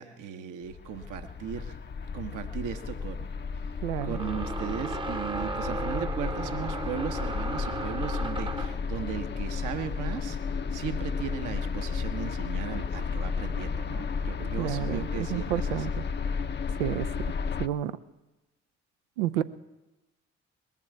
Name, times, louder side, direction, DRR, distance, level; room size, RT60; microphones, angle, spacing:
voice 1, 0.0-1.8 2.1-3.3 4.0-10.4 10.7-15.9 19.4-19.5, right 9 dB, 65° right, 6 dB, 1.1 m, -37 dB
sound 1, 0.7-17.7, left 5 dB, 30° left, 0.7 m, -33 dB
sound 2, 2.1-2.2 4.0-8.9, right 3 dB, 15° right, 0.8 m, -35 dB
voice 2, 3.8-4.2 14.6-16.1 16.8-17.1 17.6-17.9 19.2-19.4, right 12 dB, 85° right, 14 dB, 0.6 m, -30 dB
20.0 x 7.2 x 9.3 m, 1.1 s
hypercardioid pair, 40°, 34 cm